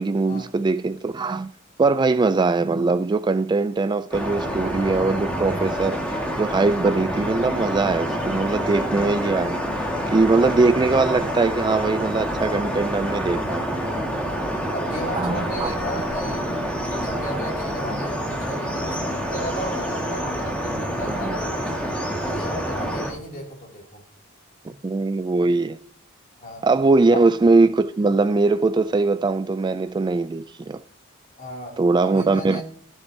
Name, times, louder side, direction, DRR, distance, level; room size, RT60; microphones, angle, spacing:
voice 1, 0.0-1.5 1.8-13.7 15.1-15.7 21.1-21.3 24.6-25.8 26.6-30.8 31.8-32.6, right 3 dB, 20° right, 0.3 m, -21 dB
sound 1, 4.1-23.1, equal, 5° left, 2.0 m, -27 dB
voice 2, 14.2-16.5 17.0-21.8 22.2-24.0 26.4-26.7 27.1-27.2 31.4-32.6, equal, 40° left, 2.9 m, -35 dB
15.0 x 7.1 x 2.8 m
head